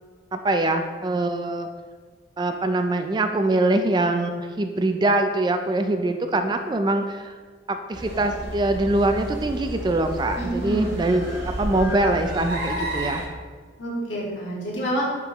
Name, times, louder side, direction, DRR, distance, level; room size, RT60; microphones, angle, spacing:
voice 1, 0.3-1.7 2.4-7.3 7.7-13.2, right 2 dB, 20° right, 6 dB, 0.3 m, -23 dB
sound 1, 7.9-13.3, right 1 dB, 70° right, 1.4 m, -31 dB
voice 2, 10.4-11.0 13.8-15.1, equal, 75° left, -5 dB, 1.9 m, -28 dB
10.0 x 3.7 x 3.0 m, 1.5 s
head